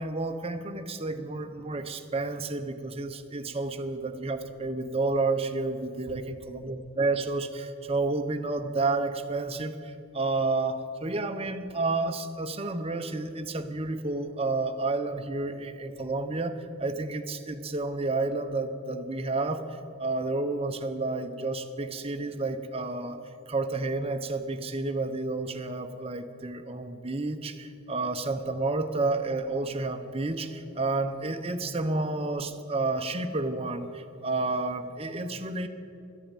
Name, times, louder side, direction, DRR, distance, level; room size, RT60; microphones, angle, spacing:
voice 1, 0.0-19.6 20.0-23.2 23.5-35.7, right 3 dB, 25° right, 7 dB, 0.7 m, -30 dB
13.0 x 8.5 x 8.9 m, 2.6 s
head